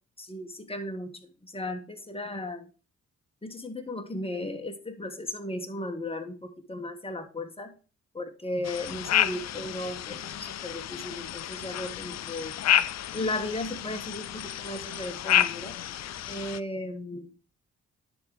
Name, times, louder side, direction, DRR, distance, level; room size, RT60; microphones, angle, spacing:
voice 1, 0.2-2.7 3.4-7.7 8.1-12.6 13.1-15.8 16.3-17.3, left 1 dB, 20° left, 6 dB, 1.5 m, -36 dB
sound 1, 8.6-16.6, left 11 dB, 60° left, 0.5 m, -30 dB
10.0 x 3.8 x 4.7 m, 0.35 s
cardioid pair, 55°, 31 cm